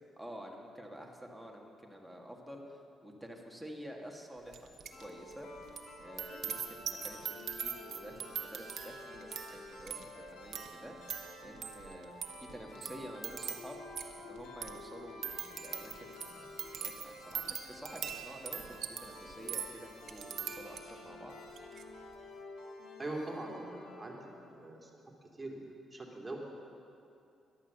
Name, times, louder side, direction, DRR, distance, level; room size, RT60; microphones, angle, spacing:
voice 1, 0.2-4.7 5.0-5.5 6.0-11.0 11.4-12.2 12.5-13.8 14.2-21.4, equal, 5° right, 0 dB, 2.0 m, -49 dB
sound 1, 4.5-5.1 5.3-21.1 21.5-21.8, right 8 dB, 65° right, 1.1 m, -43 dB
sound 2, 4.9-24.8, left 2 dB, 85° left, 2.5 m, -51 dB
voice 2, 23.0-24.9 25.2-26.4, right 2 dB, 20° right, 0 dB, 2.5 m, -42 dB
13.0 x 11.5 x 6.9 m, 2.7 s
cardioid pair, 90°, 0 cm